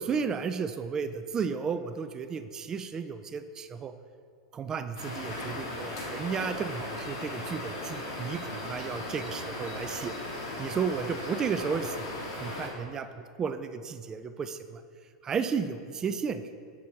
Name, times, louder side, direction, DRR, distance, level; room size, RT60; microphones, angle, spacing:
voice 1, 0.0-3.9 4.5-10.2 10.6-13.1 13.4-14.8 15.2-16.4, right 6 dB, 25° right, 10 dB, 0.3 m, -33 dB
sound 1, 5.0-12.7, left 2 dB, 75° left, 1.5 m, -37 dB
6.2 x 6.0 x 2.8 m, 2.1 s
hypercardioid pair, 95°, 2 cm